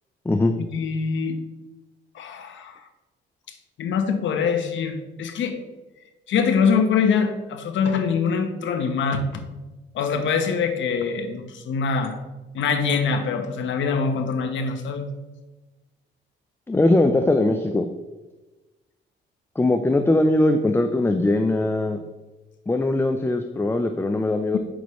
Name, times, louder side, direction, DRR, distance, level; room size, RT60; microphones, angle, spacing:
voice 1, 0.6-1.4 2.1-2.8 3.8-5.6 6.3-9.4 9.9-12.2 12.5-15.1, left 5 dB, 70° left, 7 dB, 1.0 m, -24 dB
voice 2, 16.7-17.9 19.6-22.0 22.7-24.6, left 2 dB, 10° left, 7 dB, 0.5 m, -20 dB
8.2 x 6.2 x 3.1 m, 1.1 s
cardioid pair, 90°, 20 cm